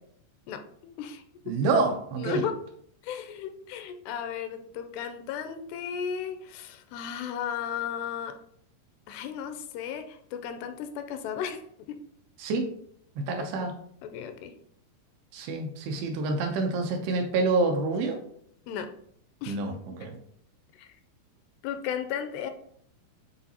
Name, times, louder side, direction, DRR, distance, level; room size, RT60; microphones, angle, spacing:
voice 1, 0.5-1.6 2.2-2.6 3.0-8.4 9.1-11.6 11.9-12.0 13.4-13.5 14.0-14.5 18.7-18.9 19.4-19.6 20.7-20.9 21.6-22.5, left 8 dB, 85° left, 9 dB, 2.6 m, -35 dB
voice 2, 1.5-2.4 12.4-12.6 13.2-13.7 15.3-18.2 19.5-20.2, right 3 dB, 75° right, 3 dB, 2.6 m, -27 dB
9.6 x 4.0 x 2.8 m, 0.68 s
omnidirectional pair, 4.9 m